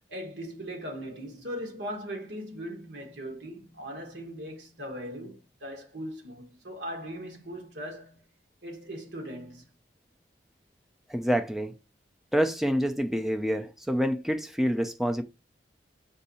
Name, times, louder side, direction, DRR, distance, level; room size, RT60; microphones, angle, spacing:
voice 1, 0.1-8.3 8.6-9.7, equal, 75° right, 1.4 m, -39 dB
voice 2, 11.1-11.7 12.3-15.2, equal, ahead, 0.4 m, -27 dB
4.6 x 2.6 x 4.1 m
head